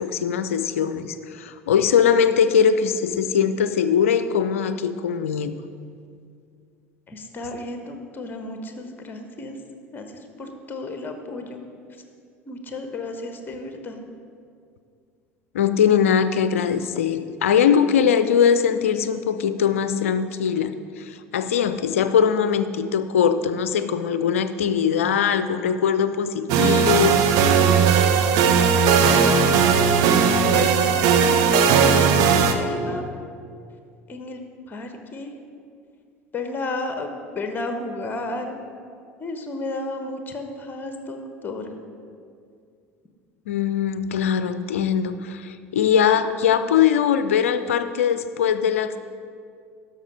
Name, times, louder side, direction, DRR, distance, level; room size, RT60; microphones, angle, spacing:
voice 1, 0.0-5.5 15.5-27.2 43.5-49.0, left 7 dB, 70° left, 12 dB, 0.5 m, -21 dB
voice 2, 7.1-9.6 9.9-11.6 12.5-14.0 28.7-29.5 30.5-33.1 34.1-34.4 34.7-35.3 36.3-37.1 37.3-38.6 39.2-41.7, left 2 dB, 25° left, 6 dB, 1.1 m, -32 dB
sound 1, 26.5-32.5, right 6 dB, 50° right, 0.7 m, -17 dB
11.5 x 6.5 x 5.1 m, 2.3 s
figure-of-eight pair, 65°, 8 cm